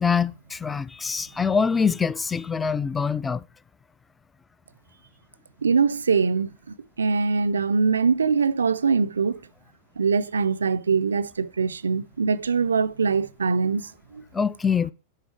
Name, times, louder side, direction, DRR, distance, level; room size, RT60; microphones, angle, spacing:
voice 1, 0.0-3.4 14.3-14.9, left 6 dB, 15° left, 0.3 m, -24 dB
voice 2, 5.6-6.5 7.0-9.4 10.0-14.2, right 5 dB, 70° right, 0.3 m, -23 dB
9.5 x 3.6 x 4.9 m
figure-of-eight pair, 90°, 0 cm